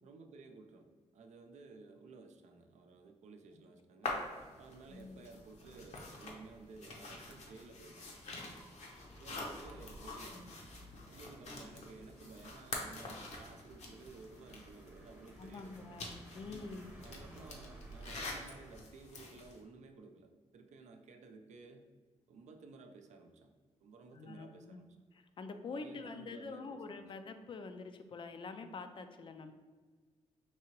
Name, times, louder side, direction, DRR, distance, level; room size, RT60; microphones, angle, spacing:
voice 1, 0.0-4.2 4.6-8.2 9.2-10.6 11.0-16.0 17.0-21.9 22.3-23.5 23.8-24.9 25.7-27.1, right 4 dB, 70° right, 4 dB, 0.5 m, -55 dB
sound 1, 4.0-19.6, left 2 dB, 65° left, 0.8 m, -47 dB
voice 2, 4.9-5.2 10.3-10.5 15.4-16.9 24.1-24.8 25.4-29.5, left 4 dB, 45° left, 8 dB, 0.4 m, -46 dB
sound 2, 9.0-18.8, right 1 dB, 15° right, 0.8 m, -56 dB
4.6 x 2.8 x 2.9 m, 1.4 s
cardioid pair, 85°, 12 cm